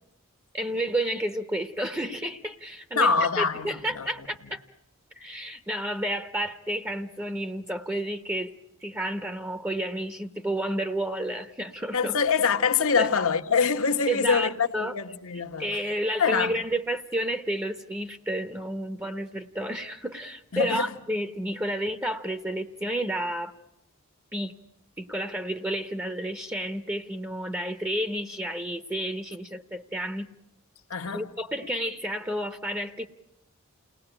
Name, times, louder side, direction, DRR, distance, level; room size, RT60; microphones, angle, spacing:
voice 1, 0.5-3.1 3.4-4.6 5.2-8.5 8.8-12.2 13.0-13.1 14.1-14.9 15.3-23.5 24.3-24.5 25.0-30.3 31.1-33.1, right 1 dB, 15° right, 1.0 m, -31 dB
voice 2, 3.0-4.1 11.9-15.8 16.2-16.6 20.5-20.9 30.9-31.3, left 5 dB, 70° left, 1.3 m, -25 dB
29.5 x 19.5 x 9.9 m
head